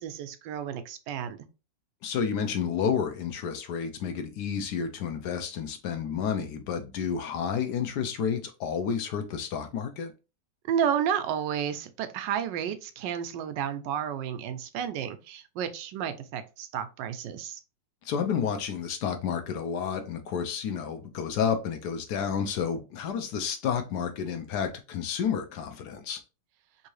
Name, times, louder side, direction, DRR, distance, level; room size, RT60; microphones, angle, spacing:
voice 1, 0.0-1.4 10.7-17.6, right 8 dB, 80° right, 1.2 m, -31 dB
voice 2, 2.0-10.1 18.0-26.2, left 7 dB, 75° left, 1.1 m, -30 dB
3.5 x 2.7 x 3.1 m
omnidirectional pair, 1.9 m